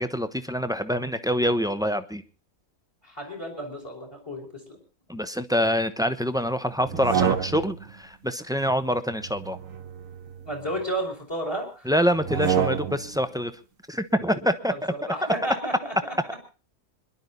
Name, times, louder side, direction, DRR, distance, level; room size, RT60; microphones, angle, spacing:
voice 1, 0.0-2.2 5.1-9.6 11.8-13.5 13.9-15.1, equal, 5° right, 11 dB, 0.9 m, -26 dB
voice 2, 3.0-4.8 10.4-11.9 14.7-16.1, right 1 dB, 20° left, 4 dB, 4.8 m, -32 dB
sound 1, 6.8-7.9 9.2-10.8 12.2-13.2, right 8 dB, 75° right, 1.7 m, -28 dB
26.0 x 11.5 x 4.0 m, 0.35 s
omnidirectional pair, 1.4 m